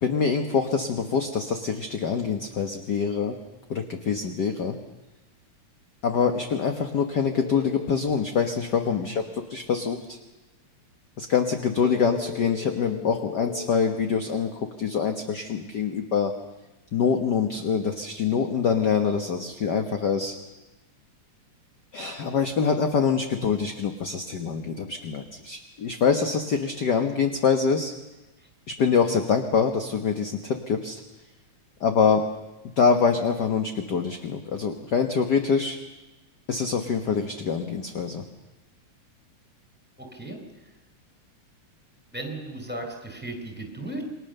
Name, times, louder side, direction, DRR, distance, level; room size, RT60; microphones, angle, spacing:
voice 1, 0.0-3.4 3.7-4.7 6.0-10.2 11.2-16.3 16.9-20.3 21.9-27.9 28.8-31.0 31.8-32.3 32.8-35.8 36.5-38.2, left 6 dB, 50° left, 5 dB, 1.4 m, -25 dB
sound 1, 7.3-7.9 11.8-13.7, left 9 dB, 80° left, 2.9 m, -38 dB
voice 2, 40.0-40.7 42.1-44.1, right 1 dB, 5° right, 3 dB, 4.3 m, -36 dB
28.5 x 22.0 x 6.7 m, 1.1 s
omnidirectional pair, 3.3 m